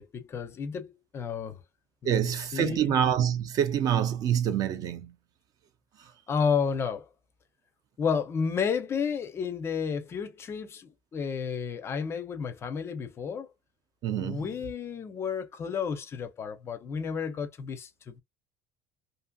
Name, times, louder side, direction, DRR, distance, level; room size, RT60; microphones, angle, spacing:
voice 1, 0.0-1.6 2.0-3.0 6.3-7.1 8.0-13.5 14.2-18.2, left 6 dB, 25° left, 0.4 m, -32 dB
voice 2, 2.0-5.1 6.0-6.1 14.0-14.5, right 9 dB, 40° right, 0.4 m, -26 dB
2.7 x 2.6 x 2.2 m
cardioid pair, 165°, 10 cm